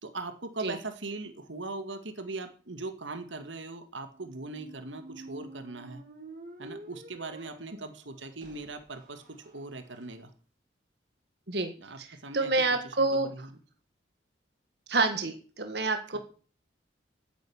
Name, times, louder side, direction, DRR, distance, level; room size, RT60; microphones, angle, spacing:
voice 1, 0.0-6.0 6.6-9.2 9.5-10.3 11.8-12.5 12.8-13.5, right 3 dB, 90° right, 9 dB, 1.9 m, -40 dB
sound 1, 4.1-10.0, right 2 dB, 45° right, 3.1 m, -49 dB
voice 2, 11.5-13.5 14.9-16.2, right 3 dB, 60° right, 7 dB, 1.6 m, -28 dB
9.4 x 9.2 x 8.6 m, 0.39 s
head